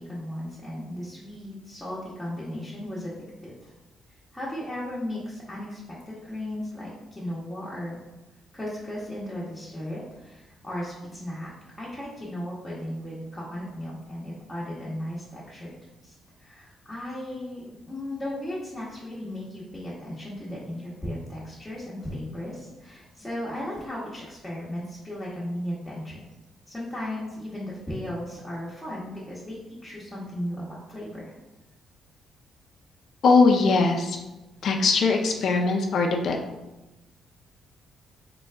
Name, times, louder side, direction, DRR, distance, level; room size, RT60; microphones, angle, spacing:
voice 1, 0.0-3.2 3.4-3.7 4.3-8.0 8.5-11.5 11.8-15.7 16.0-26.2 26.7-31.3, left 1 dB, 10° left, -8 dB, 1.1 m, -36 dB
voice 2, 33.2-34.2 34.6-36.4, left 4 dB, 60° left, 2 dB, 0.4 m, -20 dB
3.9 x 2.3 x 3.3 m, 1.1 s
cardioid pair, 90°, 0 cm